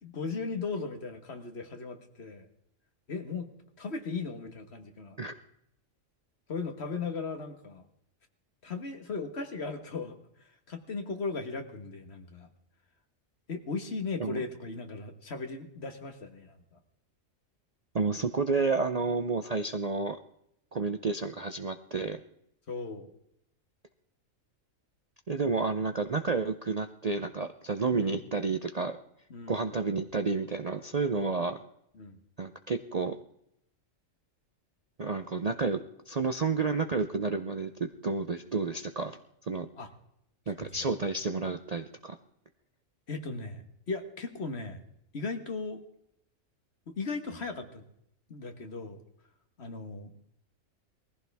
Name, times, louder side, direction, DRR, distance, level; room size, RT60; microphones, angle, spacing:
voice 1, 0.0-2.5 3.1-5.2 6.5-7.8 8.6-10.2 10.7-12.5 13.5-16.6 22.7-23.1 27.9-28.2 29.3-29.6 32.0-32.2 39.8-39.9 40.6-40.7 43.1-44.8 45.1-45.8 46.9-47.8 48.3-49.0 49.6-50.1, left 4 dB, 55° left, 6 dB, 1.7 m, -37 dB
voice 2, 17.9-20.2 20.7-22.2 25.3-29.0 29.5-31.6 32.4-33.1 35.0-39.2 39.5-39.7 40.5-42.2, right 4 dB, 40° right, 7 dB, 0.6 m, -30 dB
20.0 x 15.0 x 3.5 m, 0.76 s
omnidirectional pair, 1.4 m